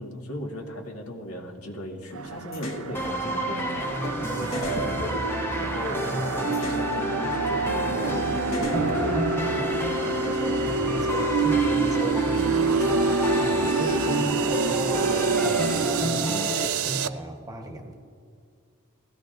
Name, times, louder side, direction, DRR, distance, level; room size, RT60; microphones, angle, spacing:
voice 1, 0.0-5.2 5.6-9.1 9.5-10.7, left 1 dB, 90° left, 0 dB, 1.8 m, -37 dB
sound 1, 2.1-17.1, right 4 dB, 75° right, 0.5 m, -27 dB
sound 2, 2.5-2.8 4.0-4.2 4.5-5.9 6.5-6.9 8.0-8.2 8.5-9.6, left 1 dB, 60° left, 1.4 m, -34 dB
sound 3, 2.9-16.7, left 1 dB, 10° left, 0.6 m, -30 dB
voice 2, 10.8-17.9, right 1 dB, 15° right, 4 dB, 1.0 m, -37 dB
20.0 x 15.5 x 2.6 m, 2.4 s
head